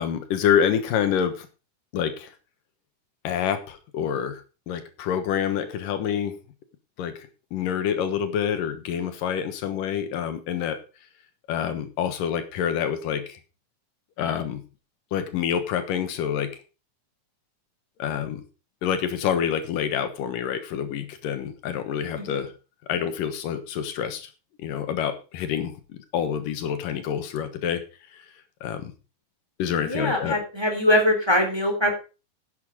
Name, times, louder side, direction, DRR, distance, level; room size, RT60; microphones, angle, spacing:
voice 1, 0.0-1.5 1.9-2.3 3.2-6.4 7.0-7.1 7.5-10.8 11.5-13.4 14.2-14.6 15.1-16.5 18.0-18.4 18.8-22.5 22.9-24.3 24.6-27.8 28.1-28.2 28.6-28.9 29.6-30.4, left 8 dB, 85° left, 9 dB, 3.0 m, -27 dB
voice 2, 29.8-31.9, left 1 dB, 10° right, 3 dB, 2.8 m, -22 dB
11.0 x 8.3 x 5.1 m, 0.32 s
omnidirectional pair, 3.7 m